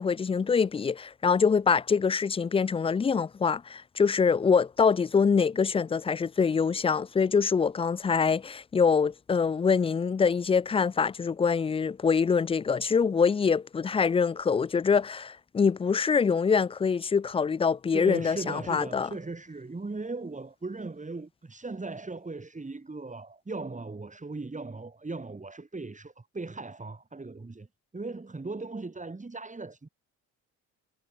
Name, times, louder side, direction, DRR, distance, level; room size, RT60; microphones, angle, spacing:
voice 1, 0.0-19.1, left 5 dB, 15° left, 0.4 m, -25 dB
voice 2, 17.9-27.7 27.9-29.9, right 3 dB, 20° right, 6.1 m, -38 dB
supercardioid pair, 65°, 36 cm